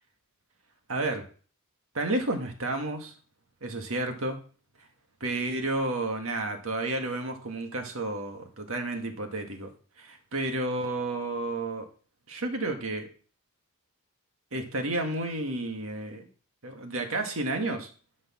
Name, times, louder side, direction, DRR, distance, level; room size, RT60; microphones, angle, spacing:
voice 1, 0.9-1.3 1.9-3.1 3.6-4.4 5.2-9.7 10.0-11.9 12.3-13.1 14.5-16.3 16.6-17.9, right 2 dB, 65° right, 5 dB, 1.8 m, -31 dB
12.0 x 5.3 x 6.2 m, 0.40 s
head